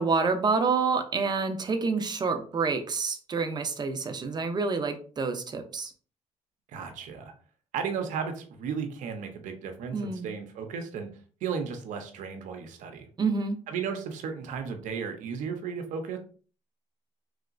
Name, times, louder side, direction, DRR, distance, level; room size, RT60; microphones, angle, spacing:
voice 1, 0.0-5.9 9.9-10.3 13.2-13.6, right 4 dB, 35° right, 6 dB, 0.6 m, -28 dB
voice 2, 6.7-7.3 7.7-13.1 13.7-16.2, right 6 dB, 90° right, 6 dB, 0.6 m, -34 dB
3.1 x 2.8 x 2.5 m, 0.40 s
cardioid pair, 100°, 13 cm